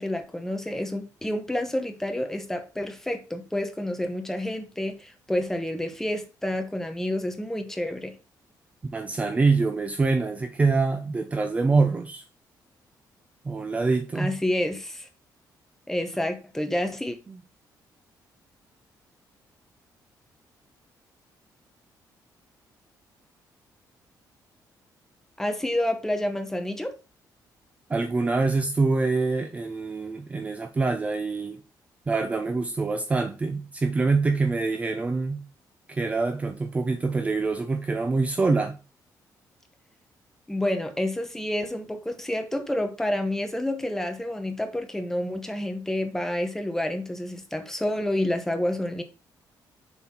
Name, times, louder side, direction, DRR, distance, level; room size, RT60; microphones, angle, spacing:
voice 1, 0.0-8.1 14.1-15.1 15.9-17.2 25.4-26.9 40.5-49.0, left 1 dB, 5° left, 0.9 m, -29 dB
voice 2, 8.9-12.2 13.4-14.3 17.3-17.4 27.9-31.6 32.1-35.4 35.9-38.8, right 3 dB, 20° right, 0.5 m, -25 dB
7.0 x 4.1 x 4.3 m
cardioid pair, 165°, 7 cm